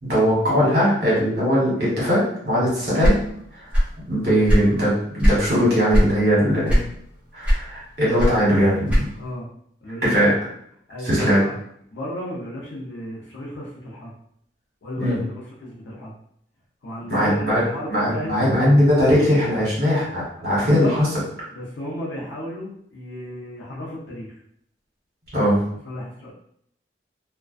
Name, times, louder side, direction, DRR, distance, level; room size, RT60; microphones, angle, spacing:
voice 1, 0.0-3.2 3.5-3.7 4.1-6.8 7.3-9.1 10.0-10.3 11.0-11.4 15.0-15.2 17.1-17.6 17.9-21.1 25.3-25.6, equal, 60° right, -7 dB, 1.1 m, -20 dB
sound 1, 3.0-4.0 4.3-5.5 5.9-6.2 6.7-7.1 7.4-9.3, equal, 5° right, 0.7 m, -19 dB
voice 2, 9.2-9.5 9.8-10.5 10.9-11.6 11.9-14.1 14.8-16.1 16.8-18.8 20.6-21.0 21.5-24.4 25.8-26.3, left 1 dB, 90° left, -5 dB, 0.6 m, -33 dB
2.3 x 2.2 x 2.4 m, 0.71 s
head